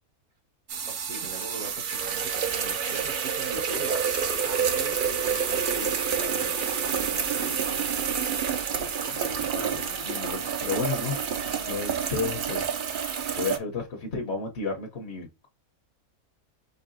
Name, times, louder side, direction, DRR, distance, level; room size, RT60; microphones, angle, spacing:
sound 1, 0.7-13.6, right 7 dB, 60° right, 0.5 m, -28 dB
voice 1, 0.9-8.1, right 2 dB, 80° right, 2.3 m, -41 dB
voice 2, 8.8-11.2 11.4-12.7 13.3-15.5, left 4 dB, 55° left, 1.0 m, -33 dB
5.5 x 3.4 x 2.5 m
omnidirectional pair, 1.5 m